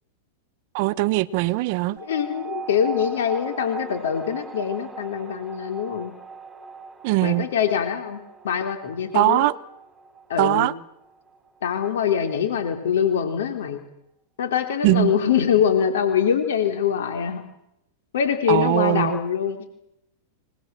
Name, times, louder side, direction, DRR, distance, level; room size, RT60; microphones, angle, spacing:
voice 1, 0.7-2.0 7.0-7.5 9.1-9.5 10.4-10.7 14.8-15.1 18.5-19.2, right 20 dB, 55° right, 1.0 m, -20 dB
voice 2, 2.0-6.1 7.2-8.2 8.4-9.5 10.3-10.7 11.6-13.8 14.4-17.4 18.1-19.6, left 8 dB, 80° left, 3.6 m, -23 dB
sound 1, 2.0-12.9, right 5 dB, 10° right, 3.6 m, -39 dB
28.0 x 20.0 x 7.7 m
hypercardioid pair, 130°, 0 cm